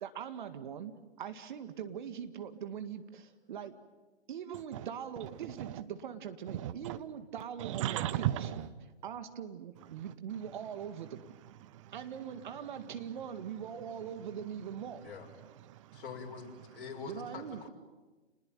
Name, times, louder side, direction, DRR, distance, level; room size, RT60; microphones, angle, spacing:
voice 1, 0.0-0.9 1.2-3.7 4.3-8.3 9.0-11.2 11.9-15.0 17.1-17.7, right 8 dB, 45° right, 1.9 m, -42 dB
voice 2, 5.2-5.8 6.5-7.0 7.6-8.7 9.9-10.5 11.2-12.9 15.2-16.0, right 13 dB, 30° right, 1.0 m, -39 dB
voice 3, 15.9-17.7, left 5 dB, 50° left, 6.2 m, -45 dB
29.5 x 20.5 x 9.1 m
figure-of-eight pair, 135°, 33 cm